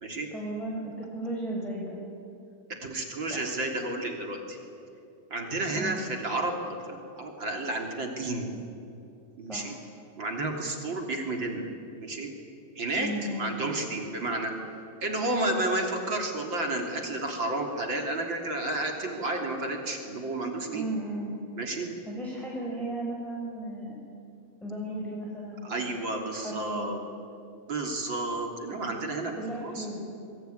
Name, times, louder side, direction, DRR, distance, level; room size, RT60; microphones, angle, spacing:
voice 1, 0.3-2.0 3.3-3.4 5.7-6.0 9.5-9.7 12.9-13.5 20.7-21.3 21.6-21.7 22.0-24.0 24.6-25.7 26.3-26.9 29.4-30.0, right 1 dB, ahead, -3 dB, 4.6 m, -35 dB
voice 2, 2.8-4.6 5.3-8.5 9.4-9.7 10.2-11.7 12.0-12.3 12.8-13.1 13.4-14.5 15.0-20.9 21.6-21.9 25.6-27.0 27.7-29.3 29.6-29.9, right 2 dB, 30° right, 2 dB, 3.3 m, -31 dB
27.5 x 23.0 x 9.5 m, 2.7 s
omnidirectional pair, 4.7 m